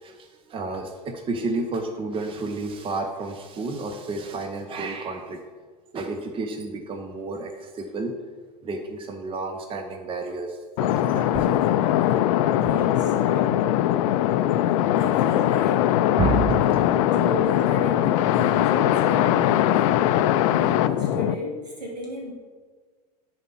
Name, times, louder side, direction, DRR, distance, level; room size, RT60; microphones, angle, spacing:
voice 1, 0.0-5.4 5.9-8.1 8.6-11.6 16.2-17.2, right 3 dB, 25° right, 5 dB, 0.9 m, -30 dB
sound 1, 10.8-21.3, left 12 dB, 55° left, 0.5 m, -21 dB
voice 2, 12.5-13.6 15.0-15.9 17.0-19.8 20.5-22.3, left 1 dB, 80° right, -2 dB, 2.5 m, -34 dB
10.5 x 4.2 x 5.8 m, 1.5 s
figure-of-eight pair, 75°, 21 cm